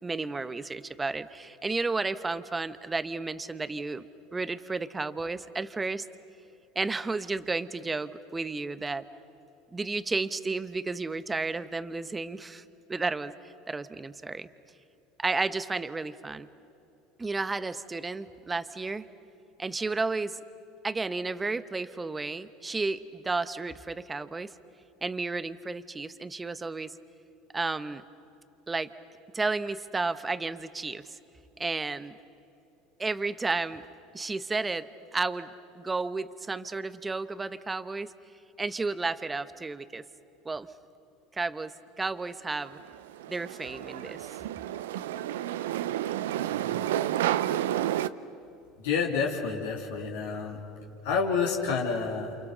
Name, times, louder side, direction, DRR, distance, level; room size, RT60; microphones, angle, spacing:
voice 1, 0.0-4.0 4.3-6.1 6.7-9.0 9.7-12.6 12.9-14.5 15.2-16.5 17.2-19.1 19.6-20.4 20.8-24.5 25.0-26.9 27.5-28.0 28.7-28.9 29.3-31.2 31.6-32.1 33.0-33.8 34.1-34.9 35.1-35.5 35.8-38.1 38.6-40.0 40.4-40.7 41.3-42.8 43.3-44.3, right 3 dB, 20° right, 13 dB, 1.1 m, -32 dB
sound 1, 42.6-48.1, right 12 dB, 80° right, 0.6 m, -30 dB
voice 2, 48.8-50.6 51.0-52.4, left 5 dB, 75° left, -1 dB, 3.0 m, -29 dB
29.0 x 28.5 x 6.8 m, 2.9 s
hypercardioid pair, 80°, 0 cm